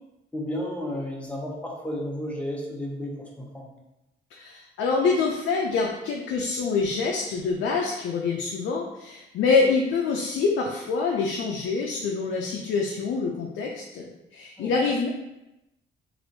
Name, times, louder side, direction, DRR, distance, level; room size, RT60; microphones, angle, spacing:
voice 1, 0.3-3.7 14.6-14.7, left 1 dB, 5° left, -2 dB, 0.7 m, -32 dB
voice 2, 4.3-15.1, left 4 dB, 70° left, 0 dB, 0.4 m, -26 dB
3.3 x 2.6 x 2.6 m, 0.94 s
cardioid pair, 90°, 20 cm